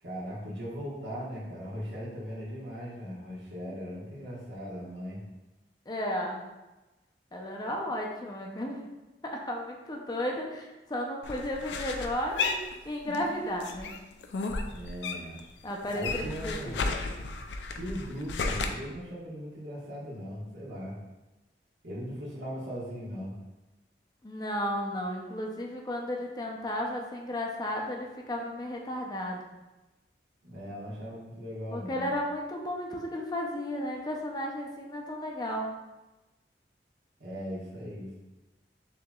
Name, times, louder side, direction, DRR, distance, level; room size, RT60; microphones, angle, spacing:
voice 1, 0.0-5.2 14.7-15.4 15.9-16.8 17.7-21.0 21.8-23.4 30.4-32.1 37.2-38.2, equal, 80° right, -6 dB, 1.4 m, -39 dB
voice 2, 5.9-6.4 7.3-8.8 9.2-12.6 12.8-13.9 15.6-16.8 24.2-29.5 31.7-35.7, left 1 dB, 25° left, 0 dB, 0.5 m, -34 dB
sound 1, 11.2-13.3 13.6-15.4 15.7-18.7, left 4 dB, 80° left, 0.4 m, -33 dB
6.4 x 2.9 x 2.3 m, 1.1 s
head